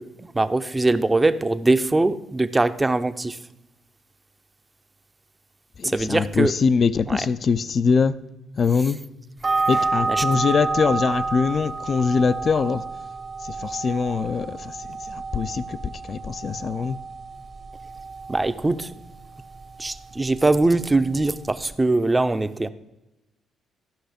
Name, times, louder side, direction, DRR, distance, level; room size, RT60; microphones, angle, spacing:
voice 1, 0.0-3.4 5.8-6.5 7.0-7.3 8.8-8.9 9.7-10.4 18.3-18.9 19.8-22.7, right 2 dB, 20° right, 0.6 m, -22 dB
voice 2, 5.8-8.2 8.6-9.1 9.7-12.8 13.4-17.0, left 5 dB, 50° left, 0.4 m, -23 dB
sound 1, 9.4-21.8, right 3 dB, 40° right, 0.9 m, -30 dB
13.5 x 5.6 x 5.0 m
cardioid pair, 90°, 0 cm